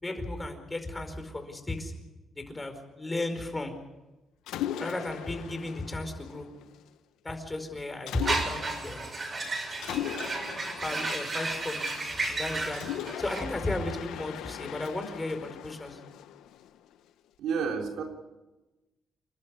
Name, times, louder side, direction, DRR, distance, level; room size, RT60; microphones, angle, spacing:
voice 1, 0.0-1.9 2.4-3.7 4.8-6.5 7.2-9.0 10.8-11.9 12.3-12.8 13.2-16.0, left 2 dB, 20° left, 7 dB, 4.8 m, -34 dB
Mechanisms, 4.5-6.9 8.1-8.9 9.8-12.1 12.7-16.9, left 11 dB, 85° left, 1.0 m, -39 dB
sound 1, 8.2-13.4, right 3 dB, 35° right, 7.6 m, -33 dB
voice 2, 17.4-18.0, right 6 dB, 80° right, 2 dB, 3.8 m, -30 dB
29.5 x 12.0 x 9.7 m, 1.1 s
cardioid pair, 90°, 0 cm